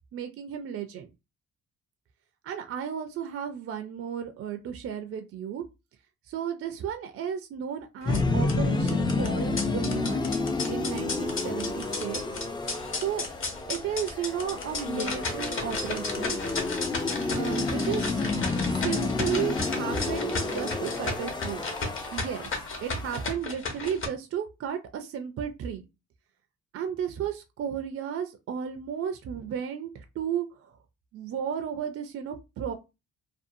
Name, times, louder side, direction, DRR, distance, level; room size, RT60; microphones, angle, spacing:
voice 1, 0.1-1.1 2.4-5.7 6.3-10.3 10.7-12.4 12.9-13.3 13.7-16.6 17.4-18.3 18.8-21.6 22.1-25.8 26.7-30.8 31.1-32.7, right 8 dB, 50° right, 7 dB, 0.4 m, -34 dB
sound 1, 8.0-24.1, left 3 dB, 45° left, 0.9 m, -35 dB
sound 2, 8.0-23.3, left 3 dB, 15° left, 0.3 m, -30 dB
2.6 x 2.3 x 2.6 m, 0.26 s
cardioid pair, 90°, 30 cm